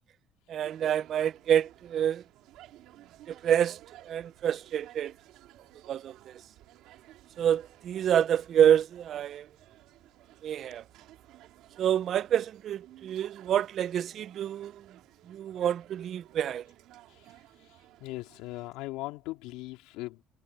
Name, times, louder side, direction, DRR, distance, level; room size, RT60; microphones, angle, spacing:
voice 1, 0.5-2.2 3.3-3.8 4.1-5.1 5.9-6.4 7.4-9.5 10.4-10.8 11.8-14.9 15.3-16.6, right 9 dB, 40° right, 0.4 m, -27 dB
sound 1, 0.6-18.7, right 14 dB, 60° right, 2.9 m, -56 dB
voice 2, 18.0-20.2, left 19 dB, 80° left, 3.5 m, -39 dB
cardioid pair, 165°, 0 cm